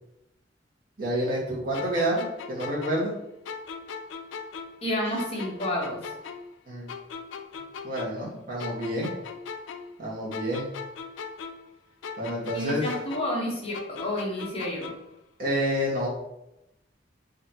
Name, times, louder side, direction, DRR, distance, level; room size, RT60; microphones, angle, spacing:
voice 1, 1.0-3.1 6.7-6.9 7.8-9.1 10.0-10.6 12.2-12.8 15.4-16.1, equal, 50° right, -5 dB, 1.5 m, -28 dB
sound 1, 1.7-4.9 5.2-8.3 8.6-11.8 12.0-15.2, left 5 dB, 90° left, 0.4 m, -39 dB
voice 2, 4.8-6.0 12.5-14.9, left 1 dB, 35° left, -3 dB, 1.1 m, -30 dB
3.7 x 3.4 x 2.9 m, 0.86 s
head